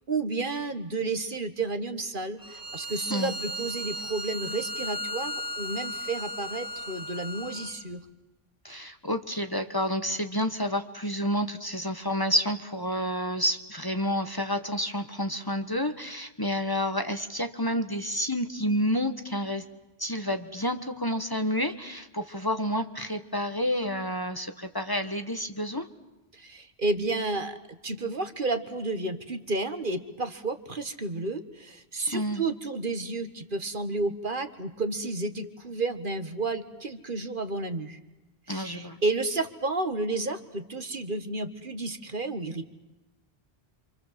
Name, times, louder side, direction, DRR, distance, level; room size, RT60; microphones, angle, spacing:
voice 1, 0.1-8.0 26.3-38.0 38.5-42.7, right 3 dB, 55° right, 9 dB, 1.8 m, -31 dB
Bowed string instrument, 2.4-7.8, equal, 5° right, 2.7 m, -36 dB
voice 2, 8.6-19.6 20.0-25.9 32.1-32.4 38.5-39.0, equal, 20° left, 8 dB, 1.4 m, -29 dB
28.0 x 26.5 x 7.6 m, 1.0 s
omnidirectional pair, 1.1 m